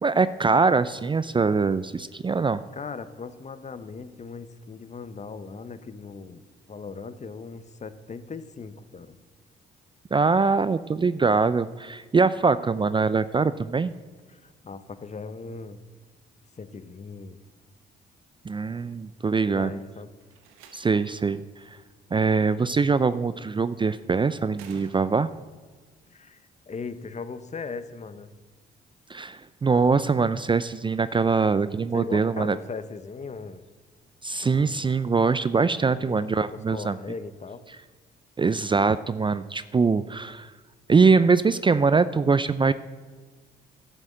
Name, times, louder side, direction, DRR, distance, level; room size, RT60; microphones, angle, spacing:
voice 1, 0.0-2.6 10.1-13.9 18.5-19.7 20.7-21.4 22.1-25.3 29.1-32.6 34.2-36.9 38.4-40.5 40.9-42.7, right 4 dB, 25° right, 15 dB, 0.4 m, -23 dB
voice 2, 2.7-9.2 14.3-15.8 16.6-17.4 19.5-20.1 26.1-28.3 31.9-33.7 34.4-34.9 35.9-37.6, left 4 dB, 35° left, 13 dB, 0.8 m, -39 dB
Slam, 20.2-21.2 22.7-23.2 24.5-25.5, right 7 dB, 90° right, 1.0 m, -50 dB
11.0 x 6.3 x 7.4 m, 1.4 s
supercardioid pair, 55°, 21 cm